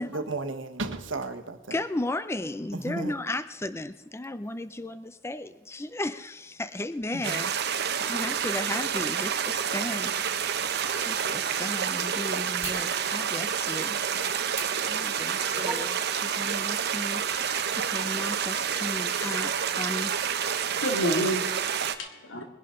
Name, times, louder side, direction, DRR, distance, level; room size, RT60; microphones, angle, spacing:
voice 1, 0.0-1.8 2.7-3.1 7.1-7.4, right 2 dB, 70° right, 1.2 m, -34 dB
voice 2, 1.7-10.1 10.6-14.0 14.3-14.5 14.9-20.2, left 1 dB, 15° left, 0.5 m, -35 dB
sound 1, 7.2-22.0, right 8 dB, 55° right, 0.8 m, -29 dB
sound 2, 12.6-12.9 14.5-14.7 15.2-15.9 16.2-16.4, right 2 dB, 15° right, 2.7 m, -36 dB
voice 3, 20.4-22.5, equal, 80° left, 2.4 m, -30 dB
21.0 x 11.0 x 3.8 m
head